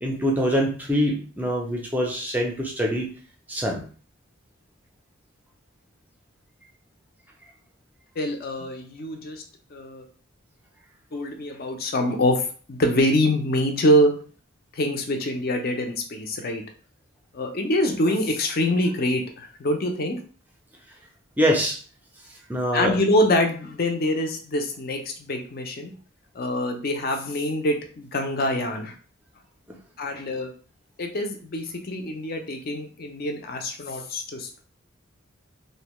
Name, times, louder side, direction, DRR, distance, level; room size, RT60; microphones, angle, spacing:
voice 1, 0.0-3.1 3.5-3.8 21.4-21.8 22.5-22.9, equal, 10° right, 0 dB, 0.4 m, -24 dB
voice 2, 8.2-9.4 9.7-10.0 11.1-14.1 14.7-16.6 17.3-20.2 22.7-25.9 26.3-29.0 30.0-30.5 31.0-34.6, left 1 dB, 45° left, 4 dB, 0.5 m, -25 dB
2.6 x 2.1 x 3.0 m, 0.42 s
head